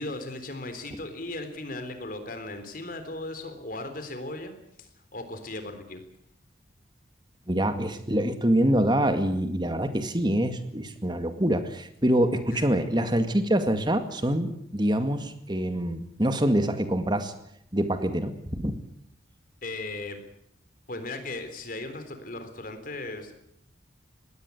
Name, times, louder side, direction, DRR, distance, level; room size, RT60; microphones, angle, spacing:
voice 1, 0.0-4.5 4.8-6.0 12.5-12.6 19.6-20.2 20.9-23.3, left 2 dB, 45° left, 8 dB, 3.7 m, -37 dB
voice 2, 7.5-17.3 17.7-18.8, right 1 dB, 25° right, 9 dB, 2.0 m, -25 dB
20.5 x 17.5 x 9.6 m, 0.74 s
head